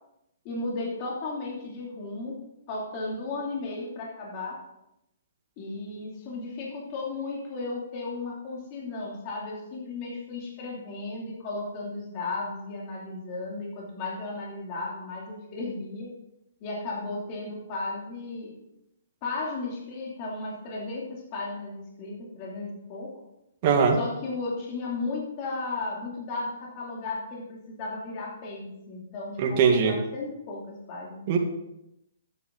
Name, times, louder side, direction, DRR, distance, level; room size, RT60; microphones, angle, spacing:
voice 1, 0.4-2.4 2.7-4.6 5.6-16.1 16.6-18.5 19.2-23.1 23.9-31.3, left 3 dB, 30° left, -3 dB, 3.0 m, -35 dB
voice 2, 23.6-24.0 29.4-30.0 31.3-31.4, right 6 dB, 35° right, 2 dB, 1.8 m, -21 dB
12.5 x 9.7 x 4.0 m, 0.85 s
hypercardioid pair, 155°, 0 cm